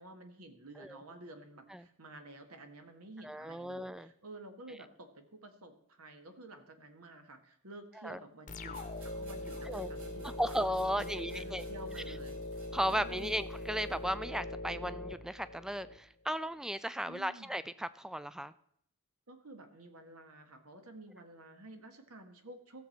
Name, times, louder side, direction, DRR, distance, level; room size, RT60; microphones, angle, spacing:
voice 1, 0.0-8.8 9.1-10.5 11.0-12.4 12.9-13.5 17.1-17.5 19.3-22.9, right 1 dB, 90° right, 6 dB, 1.6 m, -51 dB
voice 2, 3.2-4.1 8.0-8.2 9.7-9.9 10.4-11.6 12.7-18.5, equal, 5° right, 15 dB, 0.3 m, -35 dB
sound 1, 8.5-16.0, left 1 dB, 35° left, 0.9 m, -42 dB
sound 2, 8.7-14.1, right 3 dB, 65° right, 2.8 m, -58 dB
16.0 x 6.9 x 4.4 m, 0.71 s
head